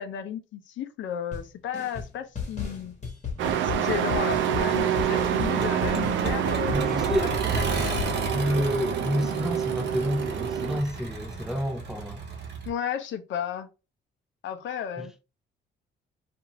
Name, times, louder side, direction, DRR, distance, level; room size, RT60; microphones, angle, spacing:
voice 1, 0.0-3.0 3.6-7.0 7.5-8.2 12.7-13.7 14.4-15.1, left 9 dB, 70° left, 0.6 m, -34 dB
sound 1, 1.3-1.5 1.7-2.1 2.4-8.2, left 5 dB, 40° left, 1.3 m, -35 dB
Truck, 3.4-10.8, right 9 dB, 75° right, 0.4 m, -27 dB
Accelerating revving vroom, 4.4-12.7, right 2 dB, 60° right, 1.0 m, -35 dB
voice 2, 6.7-7.4 7.7-7.8 8.3-12.3 15.0-15.1, equal, ahead, 0.7 m, -29 dB
2.6 x 2.5 x 2.9 m
cardioid pair, 90°, 20 cm